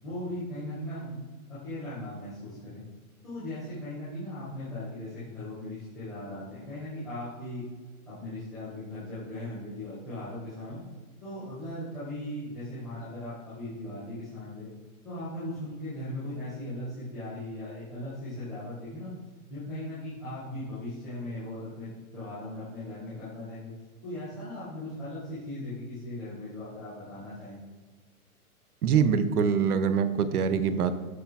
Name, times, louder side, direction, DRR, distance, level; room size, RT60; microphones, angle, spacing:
voice 1, 0.0-2.8 3.2-7.6 8.0-10.8 11.2-14.7 15.0-19.1 19.5-23.7 24.0-27.6, left 1 dB, ahead, -20 dB, 0.3 m, -38 dB
voice 2, 28.8-30.9, right 7 dB, 85° right, 11 dB, 0.8 m, -24 dB
13.0 x 4.7 x 2.3 m, 1.4 s
hypercardioid pair, 145°, 44 cm